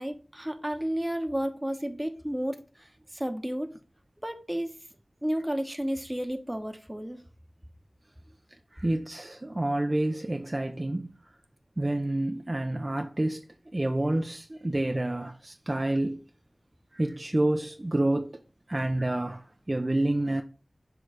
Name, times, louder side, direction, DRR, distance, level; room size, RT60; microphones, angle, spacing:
voice 1, 0.0-2.9 3.1-3.7 4.2-4.7 5.2-7.2, equal, 10° right, 0.9 m, -32 dB
voice 2, 8.7-11.1 11.8-13.4 13.7-16.2 16.9-18.4 18.7-20.4, right 1 dB, 35° right, 0.5 m, -28 dB
6.2 x 3.1 x 4.9 m
wide cardioid pair, 55°, 0 cm